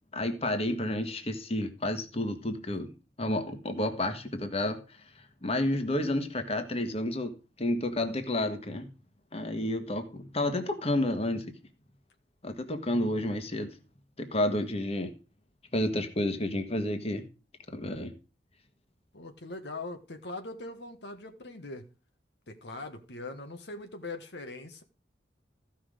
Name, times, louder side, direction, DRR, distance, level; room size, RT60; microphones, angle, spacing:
voice 1, 0.1-2.9 3.2-4.8 5.4-7.3 7.6-8.9 9.3-11.5 12.4-13.7 14.2-15.1 15.7-17.2 17.7-18.1, left 1 dB, 35° left, 1.5 m, -30 dB
voice 2, 19.1-21.9 22.5-24.8, left 2 dB, 70° left, 1.4 m, -41 dB
15.0 x 5.9 x 5.0 m
head